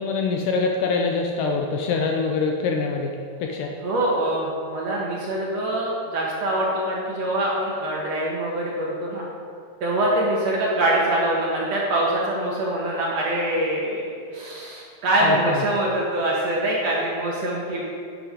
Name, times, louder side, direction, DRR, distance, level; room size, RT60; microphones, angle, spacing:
voice 1, 0.0-3.1 3.4-3.7 15.2-15.6, left 4 dB, 75° left, 1 dB, 2.0 m, -24 dB
voice 2, 3.8-9.3 9.8-17.8, right 1 dB, 60° right, -4 dB, 2.0 m, -24 dB
10.5 x 7.9 x 5.0 m, 2.3 s
omnidirectional pair, 4.2 m